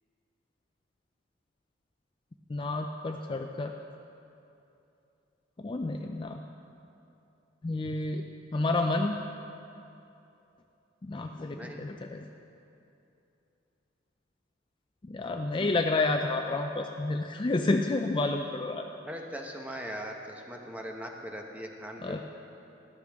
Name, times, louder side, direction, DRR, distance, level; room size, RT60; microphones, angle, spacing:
voice 1, 2.5-3.7 5.6-6.4 7.6-8.2 8.5-9.2 11.0-12.3 15.0-18.9 22.0-22.2, left 2 dB, 25° left, 4 dB, 0.4 m, -30 dB
voice 2, 19.0-22.2, equal, 10° right, 2 dB, 0.9 m, -40 dB
13.5 x 12.0 x 3.5 m, 2.8 s
head